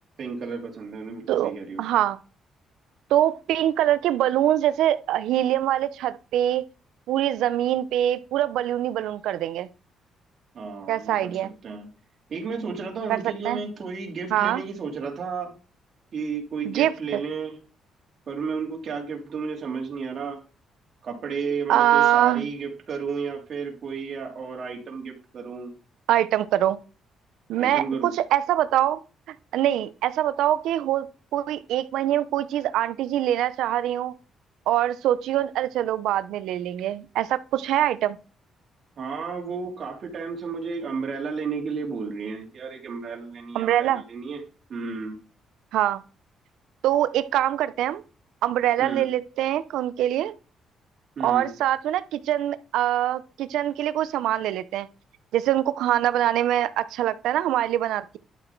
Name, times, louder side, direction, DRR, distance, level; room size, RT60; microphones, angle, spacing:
voice 1, 0.2-1.8 10.5-11.9 12.3-15.5 16.1-17.6 18.3-20.4 21.0-25.7 27.6-28.1 39.0-44.4 44.7-45.2 48.8-49.1 51.2-51.5, right 5 dB, 55° right, 3.1 m, -32 dB
voice 2, 1.8-2.2 3.1-6.7 7.1-9.7 10.9-11.5 13.1-13.6 14.3-14.6 16.6-17.2 21.7-22.5 26.1-26.8 27.5-29.0 29.3-34.1 34.7-38.2 43.5-44.0 45.7-46.0 46.8-48.0 48.4-50.3 51.2-54.9 55.3-58.2, right 12 dB, 85° right, 0.7 m, -24 dB
11.5 x 7.2 x 4.6 m
cardioid pair, 90°, 0 cm